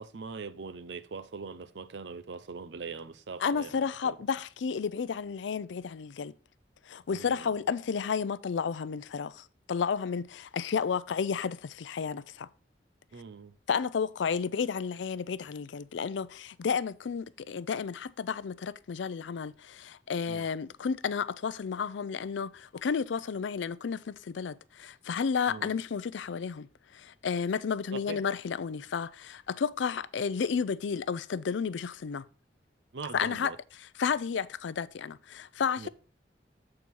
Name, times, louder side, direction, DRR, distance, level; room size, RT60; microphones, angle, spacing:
voice 1, 0.0-3.7 4.0-4.2 7.1-7.5 13.1-13.5 20.3-20.5 25.5-25.7 27.9-28.2 32.9-33.6 35.8-35.9, right 4 dB, 75° right, 0.6 m, -41 dB
voice 2, 3.4-6.3 6.9-12.5 13.7-26.7 26.9-32.2 33.1-35.9, left 6 dB, 85° left, 0.4 m, -32 dB
7.6 x 4.5 x 5.3 m
head